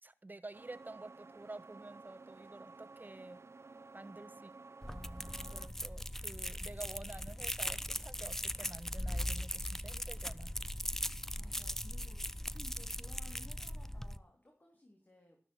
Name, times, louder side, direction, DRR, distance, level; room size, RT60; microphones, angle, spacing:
voice 1, 0.0-3.4 3.9-4.5 4.8-10.5, right 2 dB, 45° right, 13 dB, 1.3 m, -50 dB
sound 1, 0.5-5.7, right 3 dB, 90° right, 0.8 m, -54 dB
voice 2, 4.3-4.6 11.3-12.3 12.5-15.4, left 1 dB, 45° left, 1 dB, 3.5 m, -59 dB
sound 2, 4.8-14.2, equal, 10° left, 0.7 m, -39 dB
13.0 x 12.5 x 6.3 m, 0.41 s
wide cardioid pair, 45°, 5 cm